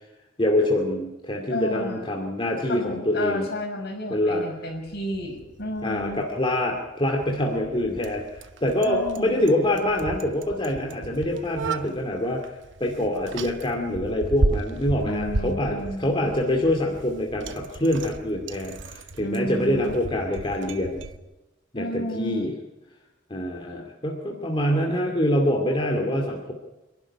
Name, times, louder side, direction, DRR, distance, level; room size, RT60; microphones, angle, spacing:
voice 1, 0.4-3.4 4.1-4.4 5.8-21.0 21.7-22.5 23.3-26.5, left 1 dB, 25° left, 1 dB, 2.3 m, -25 dB
voice 2, 1.5-2.1 2.7-6.2 8.8-9.5 15.1-16.3 19.2-19.9 21.7-22.5, left 1 dB, 55° left, 3 dB, 6.1 m, -32 dB
Bicycle, 4.9-21.2, right 2 dB, 70° right, 1.0 m, -34 dB
26.5 x 12.0 x 10.0 m, 1.1 s
head